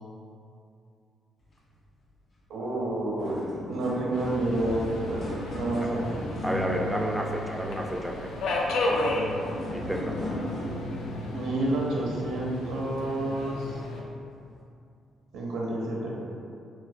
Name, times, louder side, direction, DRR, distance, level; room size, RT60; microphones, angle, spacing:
voice 1, 2.5-6.1 11.3-13.8 15.3-16.2, right 1 dB, 85° right, -3 dB, 0.7 m, -29 dB
sound 1, 2.6-2.8 3.0-12.7 13.4-13.6 14.3-14.4, left 1 dB, 45° left, 1.3 m, -37 dB
Subway metro underground, 4.1-14.0, left 2 dB, 80° left, 0.4 m, -34 dB
voice 2, 6.4-8.3 9.7-10.3, equal, 5° right, 0 dB, 0.3 m, -30 dB
4.4 x 2.1 x 2.6 m, 2.5 s
cardioid pair, 90°, 0 cm